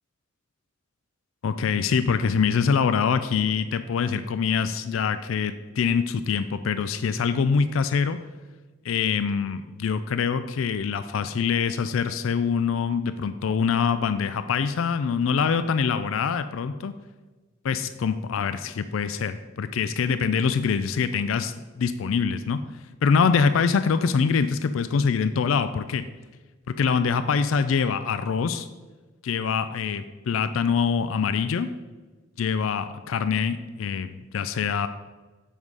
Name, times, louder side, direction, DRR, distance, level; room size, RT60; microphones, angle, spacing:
voice 1, 1.4-8.2 8.8-16.9 17.6-22.6 23.0-26.0 26.8-28.7 29.2-31.7 32.4-34.9, left 6 dB, 75° left, 11 dB, 0.4 m, -24 dB
7.2 x 5.6 x 4.7 m, 1.3 s
head